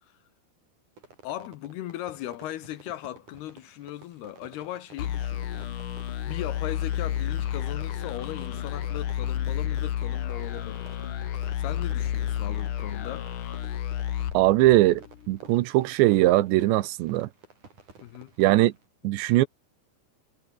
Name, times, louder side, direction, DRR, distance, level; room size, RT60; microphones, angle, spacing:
Fireworks, 1.0-18.9, right 4 dB, 45° right, 7.3 m, -53 dB
voice 1, 1.2-6.0 6.3-11.0 11.6-13.3 18.0-18.3, left 13 dB, 70° left, 2.9 m, -38 dB
sound 1, 5.0-15.3, left 10 dB, 55° left, 2.8 m, -31 dB
voice 2, 14.3-17.3 18.4-18.7 19.0-19.5, right 17 dB, 80° right, 3.1 m, -21 dB
omnidirectional pair, 5.1 m